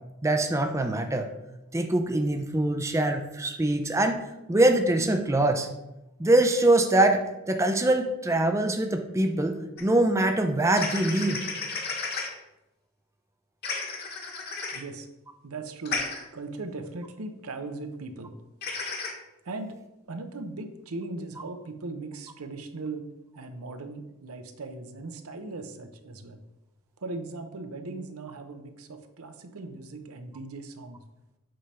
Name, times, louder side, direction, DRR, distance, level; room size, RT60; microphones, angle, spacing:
voice 1, 0.2-1.3 1.7-4.2 4.5-5.7 6.2-11.4, right 1 dB, 15° right, 5 dB, 0.5 m, -23 dB
sound 1, 9.8-9.9 10.7-12.3 13.6-14.8 15.9-16.2 18.6-19.1, left 4 dB, 45° left, 1.3 m, -32 dB
voice 2, 14.7-15.1 15.4-16.1 16.3-18.3 19.4-19.8 20.1-23.0 23.3-26.4 27.0-31.0, right 3 dB, 85° right, 8 dB, 0.8 m, -38 dB
7.7 x 3.4 x 5.6 m, 0.93 s
head